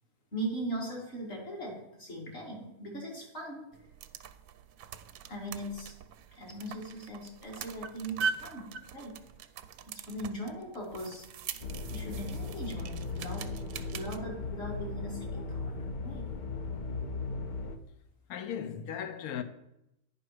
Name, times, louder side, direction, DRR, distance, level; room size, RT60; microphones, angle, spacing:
voice 1, 0.3-3.6 5.3-5.9 6.3-9.2 9.9-11.3 11.9-13.5 13.9-15.7 16.0-16.3, right 1 dB, 45° left, 2.5 m, -39 dB
sound 1, 3.7-14.2, right 6 dB, 90° right, 1.1 m, -42 dB
sound 2, 11.6-17.8, left 3 dB, 65° left, 0.4 m, -37 dB
voice 2, 18.3-19.4, left 8 dB, 85° left, 1.1 m, -37 dB
9.6 x 5.4 x 4.8 m
omnidirectional pair, 1.5 m